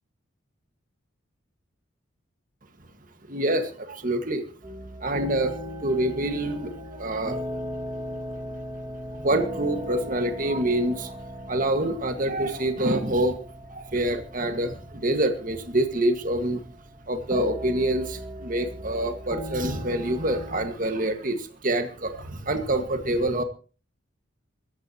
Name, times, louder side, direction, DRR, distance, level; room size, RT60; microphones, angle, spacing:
voice 1, 3.3-4.4 5.0-5.6 5.8-7.4 9.1-11.1 11.5-13.4 13.7-16.6 17.1-23.4, right 1 dB, 40° right, 6 dB, 1.8 m, -26 dB
sound 1, 4.6-20.7, equal, 20° right, 2.3 m, -38 dB
21.5 x 15.5 x 3.0 m, 0.36 s
head